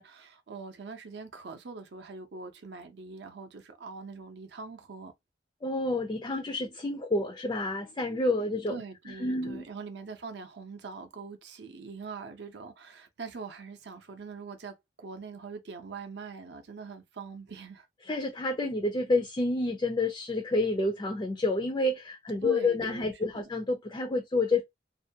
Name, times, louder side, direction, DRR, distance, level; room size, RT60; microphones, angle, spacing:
voice 1, 0.0-5.1 8.7-17.9 22.4-23.4, right 4 dB, 65° right, 0.5 m, -43 dB
voice 2, 5.6-9.7 18.0-24.6, left 2 dB, 20° left, 0.3 m, -29 dB
2.5 x 2.2 x 2.6 m
head